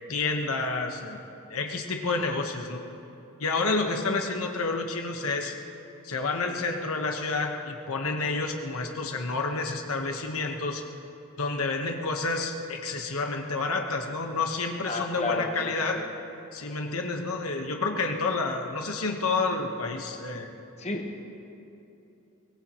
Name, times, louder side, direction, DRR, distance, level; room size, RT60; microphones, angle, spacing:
voice 1, 0.1-1.2 1.5-2.8 3.4-5.5 6.0-10.8 11.4-16.0 16.5-20.5, left 3 dB, 70° left, 3 dB, 1.2 m, -29 dB
voice 2, 14.9-16.0 20.8-21.2, left 3 dB, 30° left, 2 dB, 1.2 m, -32 dB
23.0 x 19.5 x 3.1 m, 2.8 s
head